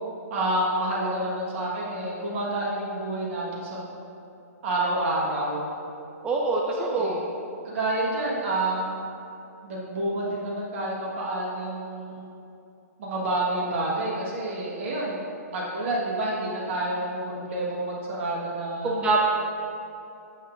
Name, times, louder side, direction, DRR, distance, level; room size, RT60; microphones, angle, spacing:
voice 1, 0.3-3.9 4.6-5.7 6.7-7.2 7.6-9.0 9.6-12.3 13.0-15.2 15.5-19.1, right 1 dB, 50° right, -4 dB, 1.4 m, -29 dB
voice 2, 6.2-7.2 18.8-19.2, right 3 dB, 10° right, -2 dB, 0.5 m, -24 dB
7.3 x 7.2 x 2.5 m, 2.7 s
figure-of-eight pair, 120°, 9 cm